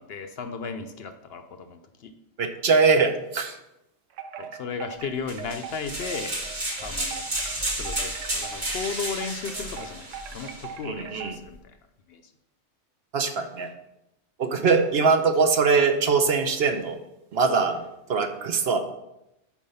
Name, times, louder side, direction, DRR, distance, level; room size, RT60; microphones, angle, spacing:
voice 1, 0.0-2.1 4.4-6.5 6.8-7.3 7.7-11.8 12.1-12.2, left 5 dB, 60° left, 9 dB, 0.8 m, -35 dB
voice 2, 2.4-3.6 10.8-11.4 13.1-13.7 14.4-17.0 17.3-18.8, right 5 dB, 60° right, 7 dB, 0.9 m, -22 dB
Wind chime, 4.1-11.5, right 7 dB, 80° right, 1.0 m, -41 dB
sound 1, 5.3-10.7, right 1 dB, 40° right, 1.8 m, -32 dB
7.2 x 4.7 x 5.5 m, 0.87 s
omnidirectional pair, 1.3 m